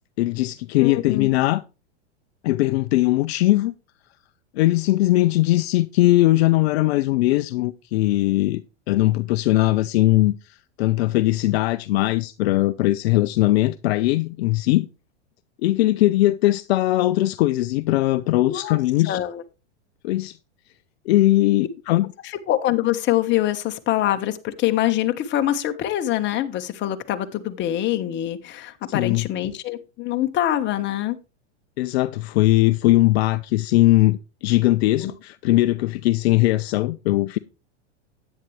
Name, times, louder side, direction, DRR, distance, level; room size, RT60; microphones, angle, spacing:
voice 1, 0.2-1.6 2.4-3.7 4.5-8.6 8.9-14.9 15.6-19.2 20.0-20.4 21.1-22.1 28.9-29.3 31.8-37.4, left 17 dB, 60° left, 0.6 m, -20 dB
voice 2, 0.8-1.3 18.5-18.8 19.0-19.4 22.5-31.2 35.0-35.1, left 13 dB, 30° left, 1.3 m, -24 dB
10.5 x 9.3 x 3.2 m
hypercardioid pair, 125°, 35 cm